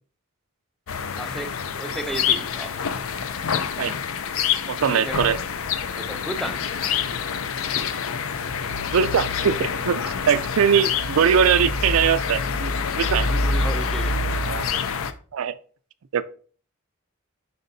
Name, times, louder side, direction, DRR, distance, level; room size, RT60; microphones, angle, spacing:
sound 1, 0.9-15.1, left 5 dB, 75° left, 0.5 m, -26 dB
voice 1, 1.2-2.8 4.9-5.3 6.0-6.7 13.3-14.2, right 1 dB, ahead, 0.4 m, -33 dB
voice 2, 4.7-5.4 8.9-10.0 10.3-12.7 13.0-13.3 14.5-14.7 15.3-15.5 16.1-16.2, right 7 dB, 85° right, 0.4 m, -21 dB
7.8 x 5.4 x 2.7 m
head